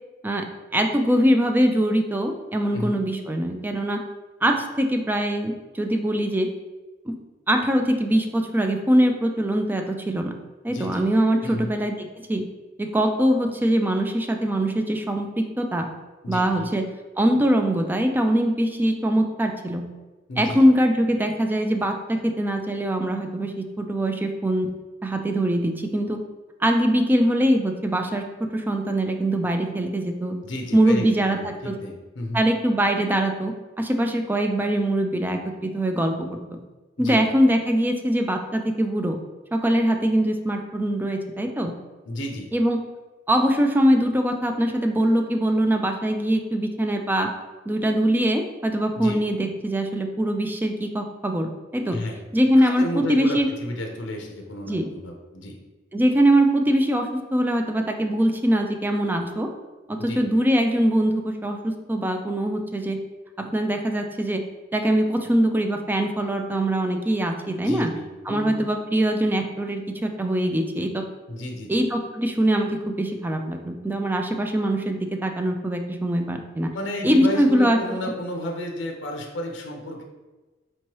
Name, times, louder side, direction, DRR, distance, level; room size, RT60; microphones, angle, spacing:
voice 1, 0.2-4.0 4.4-6.5 7.1-7.2 7.5-10.3 10.6-11.9 12.3-12.4 12.8-15.9 16.3-16.8 17.2-19.9 20.4-24.7 25.0-26.2 26.6-28.2 28.5-30.4 30.7-31.7 32.3-36.6 37.0-39.2 39.5-41.7 42.5-42.8 43.3-47.3 47.7-52.0 52.3-53.5 54.7-54.9 55.9-59.5 59.9-63.0 63.4-64.4 64.7-67.9 68.3-71.0 71.7-76.8 77.0-77.8, right 1 dB, 10° right, 4 dB, 0.3 m, -22 dB
voice 2, 10.7-11.0 11.4-11.7 16.2-16.7 20.3-20.7 30.4-32.4 37.0-37.2 42.0-42.5 48.9-49.2 51.9-52.2 52.6-55.6 60.0-60.2 67.6-68.6 71.3-71.8 76.7-80.0, left 1 dB, 70° left, 2 dB, 0.6 m, -32 dB
4.4 x 3.0 x 2.9 m, 1.2 s
head